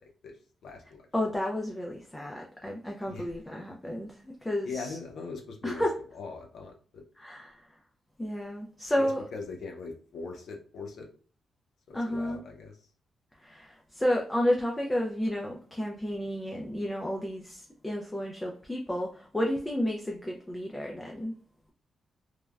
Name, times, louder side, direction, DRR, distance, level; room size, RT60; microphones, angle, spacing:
voice 1, 0.6-1.0 3.1-3.3 4.6-5.9 6.1-7.0 8.9-11.1 11.9-12.8, left 4 dB, 75° left, 1 dB, 0.6 m, -40 dB
voice 2, 1.1-4.1 4.4-4.9 5.6-5.9 7.2-7.5 8.2-9.3 11.9-12.4 13.4-21.3, left 1 dB, 10° left, -1 dB, 0.4 m, -31 dB
3.2 x 2.1 x 2.3 m, 0.43 s
cardioid pair, 130°, 0 cm